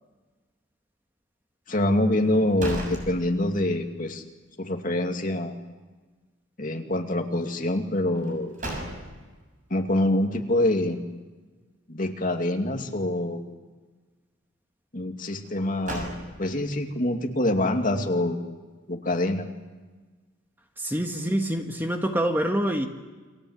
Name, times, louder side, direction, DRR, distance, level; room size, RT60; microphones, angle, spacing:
voice 1, 1.7-4.2 4.6-5.5 6.6-8.6 9.7-11.0 11.9-13.4 14.9-16.1 16.4-18.4 18.9-19.5, left 1 dB, 40° left, 3 dB, 2.4 m, -25 dB
sound 1, 2.2-3.9 4.2-4.3 8.1-9.4 15.4-16.7, right 1 dB, 40° right, 7.0 m, -36 dB
voice 2, 20.8-22.9, right 1 dB, 10° right, 4 dB, 1.7 m, -26 dB
29.5 x 24.0 x 8.1 m, 1.3 s
head